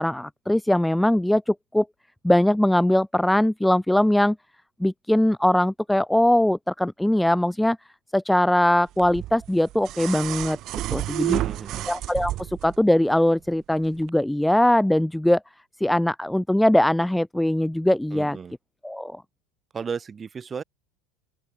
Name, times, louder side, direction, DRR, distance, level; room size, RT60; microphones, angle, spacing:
voice 1, 0.0-1.9 2.2-4.4 4.8-7.8 8.1-10.6 10.9-11.4 11.9-15.4 15.8-18.4 18.8-19.2, left 1 dB, 5° left, 0.5 m, -21 dB
sound 1, 9.0-12.8 14.0-14.1, right 15 dB, 45° right, 0.6 m, -30 dB
voice 2, 11.2-11.9 18.1-18.5 19.7-20.6, right 6 dB, 20° right, 7.8 m, -34 dB
open air
supercardioid pair, 135°, 0 cm